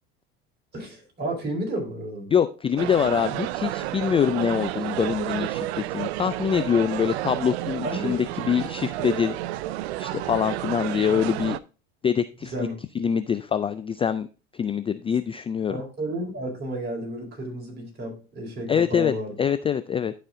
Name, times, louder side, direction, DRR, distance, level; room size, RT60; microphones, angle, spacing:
voice 1, 0.7-2.3 7.8-8.1 12.4-12.7 15.7-19.3, right 1 dB, 30° right, -1 dB, 4.5 m, -32 dB
voice 2, 2.3-9.4 10.0-11.6 12.0-12.5 13.0-14.3 14.5-15.8 18.7-19.1 19.4-20.1, left 8 dB, 20° left, 13 dB, 0.3 m, -24 dB
sound 1, 2.8-11.6, right 15 dB, 85° right, 0.5 m, -31 dB
11.5 x 4.3 x 3.7 m, 0.33 s
supercardioid pair, 95°, 31 cm